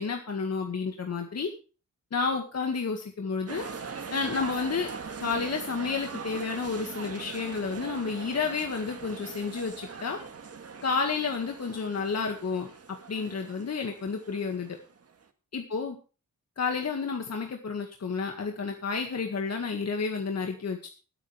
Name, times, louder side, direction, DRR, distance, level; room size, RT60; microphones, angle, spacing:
voice 1, 0.0-1.5 2.1-3.6 4.1-4.9 5.2-10.2 10.8-12.7 13.1-14.8 15.5-16.0 16.6-20.9, left 5 dB, 55° left, 3 dB, 2.0 m, -31 dB
sound 1, 3.5-15.2, right 5 dB, 50° right, 1.7 m, -41 dB
21.5 x 9.1 x 3.4 m, 0.34 s
wide cardioid pair, 125°, 32 cm